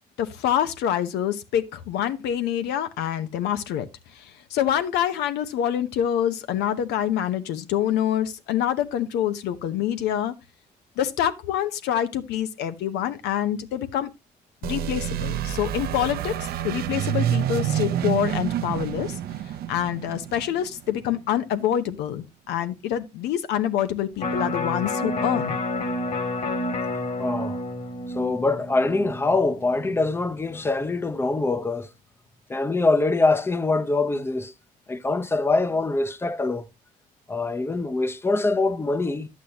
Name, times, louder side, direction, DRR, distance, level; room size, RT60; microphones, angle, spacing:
voice 1, 0.2-10.3 11.0-14.1 14.6-19.2 19.4-25.6, left 10 dB, 85° left, 0.9 m, -26 dB
sound 1, 14.6-21.2, right 10 dB, 65° right, 0.7 m, -28 dB
Electric guitar, 24.2-30.4 30.8-30.9, left 2 dB, 45° left, 2.2 m, -30 dB
voice 2, 27.2-27.6 28.1-31.9 32.5-34.5 34.9-36.7 37.3-39.3, left 3 dB, 15° left, 0.7 m, -24 dB
10.5 x 8.4 x 2.8 m
cardioid pair, 110°, 17 cm